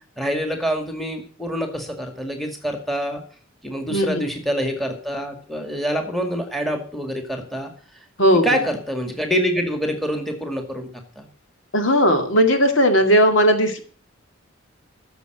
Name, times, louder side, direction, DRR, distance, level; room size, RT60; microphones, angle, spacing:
voice 1, 0.2-3.2 3.6-7.7 8.4-10.9 11.2-11.3, equal, ahead, 5 dB, 2.0 m, -26 dB
voice 2, 3.9-4.3 8.2-8.5 11.7-13.8, equal, 65° left, 6 dB, 2.1 m, -17 dB
14.0 x 7.0 x 7.9 m, 0.43 s
head